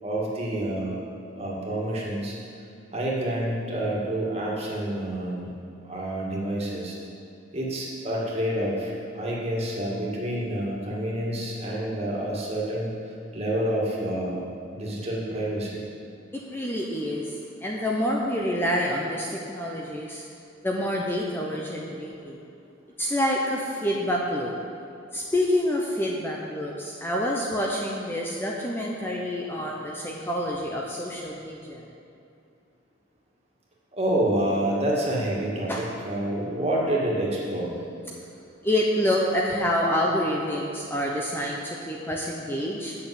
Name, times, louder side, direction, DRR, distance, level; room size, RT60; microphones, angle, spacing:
voice 1, 0.0-1.0 1.3-2.4 2.9-5.5 5.8-7.0 7.5-14.4 14.7-15.8 33.9-37.8, right 1 dB, 30° right, -4 dB, 2.0 m, -28 dB
voice 2, 16.3-20.2 20.6-22.4 23.0-24.5 25.1-31.9 35.7-35.8 38.6-43.0, equal, 10° left, -2 dB, 0.8 m, -27 dB
8.5 x 6.4 x 8.2 m, 2.6 s
head